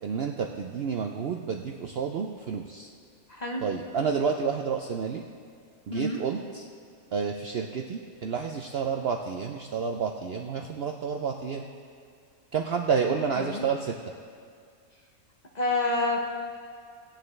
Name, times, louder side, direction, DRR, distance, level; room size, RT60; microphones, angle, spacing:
voice 1, 0.0-2.9 3.6-5.3 5.9-6.6 7.1-11.7 12.5-14.0, right 6 dB, 65° right, 3 dB, 0.6 m, -30 dB
voice 2, 3.3-3.6 5.9-6.2 13.4-13.7 15.5-16.2, left 2 dB, 35° left, 0 dB, 0.9 m, -28 dB
18.0 x 9.0 x 3.2 m, 2.2 s
omnidirectional pair, 1.5 m